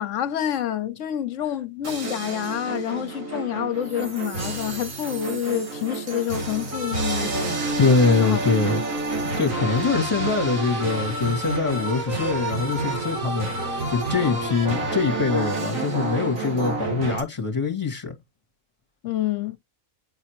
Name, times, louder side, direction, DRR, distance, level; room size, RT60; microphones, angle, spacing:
voice 1, 0.0-7.6 8.2-8.4 19.0-19.6, left 11 dB, 65° left, 1.1 m, -28 dB
sound 1, 1.8-17.2, right 2 dB, 70° right, 2.4 m, -29 dB
voice 2, 7.8-8.8 9.4-13.5 13.9-18.2, left 4 dB, 20° left, 2.1 m, -23 dB
9.3 x 4.1 x 3.1 m
omnidirectional pair, 1.4 m